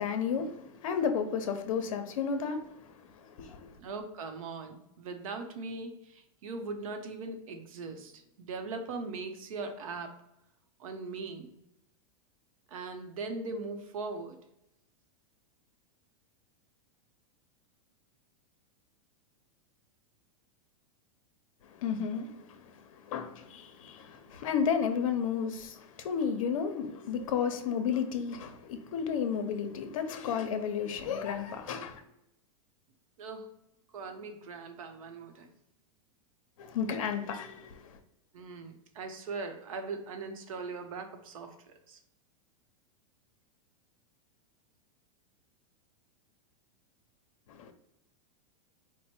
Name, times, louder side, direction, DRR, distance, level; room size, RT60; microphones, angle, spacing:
voice 1, 0.0-2.6 3.2-3.7 21.8-22.7 23.1-32.0 36.6-38.0 47.5-47.7, left 7 dB, 70° left, 7 dB, 0.7 m, -32 dB
voice 2, 3.8-10.1 10.8-11.5 12.7-14.4 33.2-33.5 33.9-35.5 38.3-42.0, right 3 dB, 75° right, 6 dB, 0.8 m, -40 dB
4.5 x 2.1 x 4.3 m, 0.84 s
supercardioid pair, 160°, 18 cm